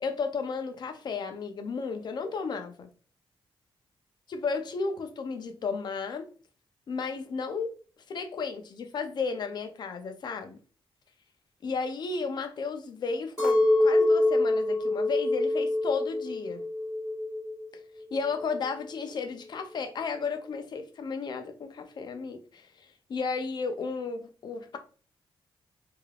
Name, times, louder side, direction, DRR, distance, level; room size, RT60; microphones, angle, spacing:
voice 1, 0.0-2.9 4.3-6.2 6.9-7.7 8.1-10.6 11.6-16.6 18.1-24.8, left 5 dB, 50° left, 6 dB, 0.6 m, -33 dB
Chink clink, 13.4-17.7 18.0-18.8, left 2 dB, 10° right, 1.4 m, -25 dB
3.5 x 3.3 x 2.3 m, 0.39 s
wide cardioid pair, 155°, 9 cm